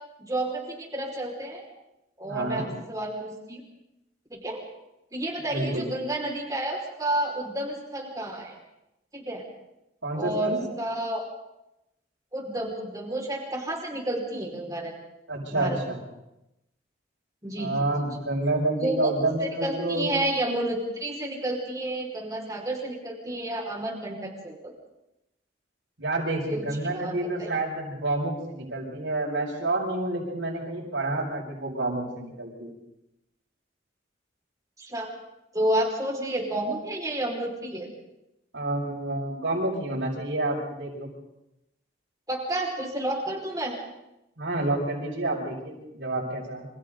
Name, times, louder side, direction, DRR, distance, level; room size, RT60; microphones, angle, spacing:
voice 1, 0.2-1.6 2.2-3.6 4.3-4.6 5.1-8.6 9.1-9.4 10.1-11.3 12.3-14.9 15.5-15.8 17.4-17.7 18.8-19.1 19.4-24.7 26.5-27.5 34.8-35.1 35.5-37.9 42.3-43.7, right 1 dB, 20° right, -1 dB, 5.4 m, -30 dB
voice 2, 2.3-2.6 5.5-5.9 10.0-10.6 15.3-16.0 17.6-20.1 26.0-32.7 38.5-41.1 44.4-46.7, right 2 dB, 85° right, -7 dB, 6.4 m, -29 dB
28.5 x 27.0 x 4.0 m, 0.89 s
head